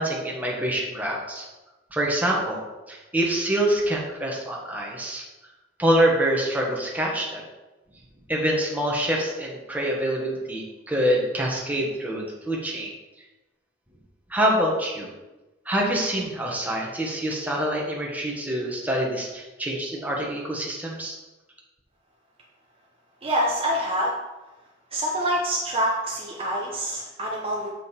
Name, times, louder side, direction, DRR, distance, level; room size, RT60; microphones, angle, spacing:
voice 1, 0.0-1.5 1.9-5.2 5.8-7.4 8.3-12.9 14.3-15.1 15.6-21.1, right 1 dB, 10° right, -3 dB, 1.4 m, -25 dB
voice 2, 23.2-24.2 24.9-27.7, equal, 30° right, -3 dB, 0.9 m, -26 dB
7.0 x 5.2 x 4.4 m, 1.1 s
head